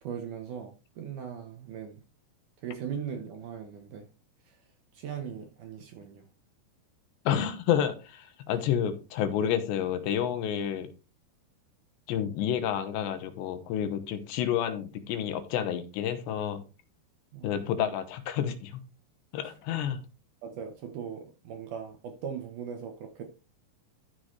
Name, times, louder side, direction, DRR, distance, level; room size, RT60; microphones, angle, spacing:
voice 1, 0.0-2.0 2.6-4.1 4.9-6.2 17.3-17.5 20.4-23.2, right 7 dB, 75° right, 1.9 m, -39 dB
voice 2, 7.3-10.9 12.1-16.6 17.4-18.8 19.3-20.0, left 9 dB, 85° left, 3.2 m, -29 dB
13.0 x 6.6 x 3.2 m
omnidirectional pair, 5.0 m